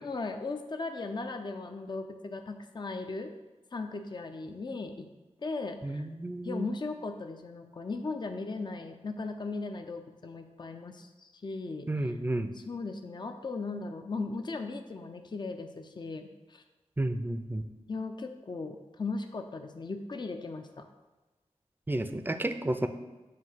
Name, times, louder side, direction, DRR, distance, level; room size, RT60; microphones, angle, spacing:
voice 1, 0.0-3.3 3.7-5.1 5.4-6.1 6.4-12.1 12.5-16.6 17.9-20.9, left 3 dB, 40° left, 6 dB, 0.5 m, -37 dB
voice 2, 5.8-6.7 11.9-12.5 17.0-17.6 21.9-22.9, right 1 dB, 15° right, 8 dB, 0.5 m, -31 dB
7.5 x 2.7 x 5.6 m, 1.2 s
cardioid pair, 45°, 12 cm